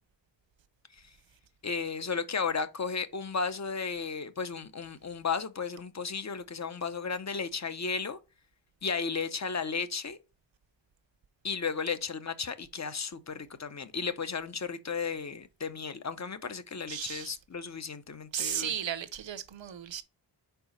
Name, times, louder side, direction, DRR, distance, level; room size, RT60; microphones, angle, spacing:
voice 1, 1.6-8.2 8.8-10.2 11.4-18.7, left 5 dB, 40° left, 0.7 m, -34 dB
voice 2, 16.9-17.3 18.3-20.0, right 9 dB, 80° right, 0.7 m, -35 dB
4.8 x 4.6 x 5.1 m
wide cardioid pair, 105°, 44 cm